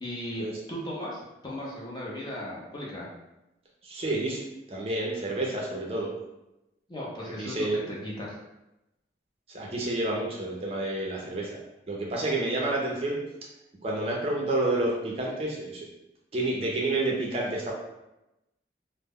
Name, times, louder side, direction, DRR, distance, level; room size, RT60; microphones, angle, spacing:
voice 1, 0.0-3.1 6.9-8.4, left 1 dB, 25° left, -5 dB, 0.5 m, -37 dB
voice 2, 3.8-4.4 4.7-6.1 7.4-7.8 9.5-11.6 11.9-13.2 13.8-15.9 16.3-17.7, right 2 dB, 35° right, -3 dB, 0.4 m, -29 dB
2.1 x 2.0 x 3.4 m, 0.94 s
head